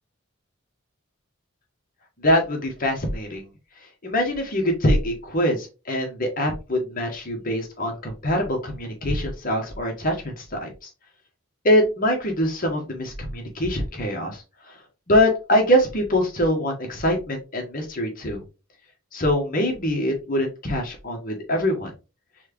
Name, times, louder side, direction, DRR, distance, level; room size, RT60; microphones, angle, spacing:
voice 1, 2.2-3.5 4.0-10.9 11.6-14.8 15.1-18.4 19.1-21.9, equal, 45° left, 2 dB, 1.5 m, -24 dB
4.7 x 3.4 x 3.1 m, 0.29 s
head